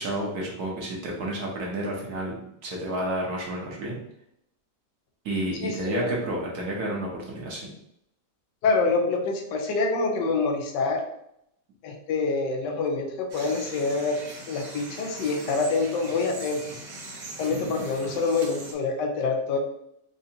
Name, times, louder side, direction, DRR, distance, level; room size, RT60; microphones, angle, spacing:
voice 1, 0.0-2.4 2.6-4.0 5.2-7.7, right 1 dB, 70° right, -2 dB, 1.3 m, -30 dB
voice 2, 5.6-6.1 8.6-11.0 11.8-14.2 14.5-16.8 17.4-19.6, left 4 dB, 85° left, 3 dB, 1.3 m, -26 dB
sound 1, 13.3-18.7, right 2 dB, 85° right, 1.6 m, -40 dB
4.7 x 2.6 x 2.7 m, 0.76 s
omnidirectional pair, 1.8 m